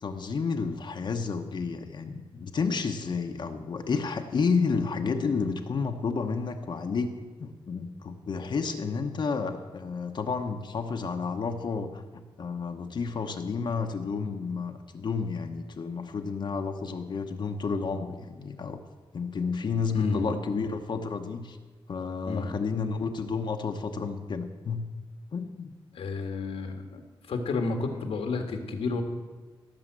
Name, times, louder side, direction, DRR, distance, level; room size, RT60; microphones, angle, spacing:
voice 1, 0.0-7.1 7.4-18.8 19.1-21.6 21.9-24.9 25.3-25.7, left 5 dB, 55° left, 5 dB, 1.0 m, -31 dB
voice 2, 19.9-20.3 22.3-22.5 25.9-27.0 27.3-29.0, left 4 dB, 85° left, 5 dB, 1.7 m, -30 dB
17.0 x 7.3 x 7.5 m, 1.3 s
wide cardioid pair, 135°, 9 cm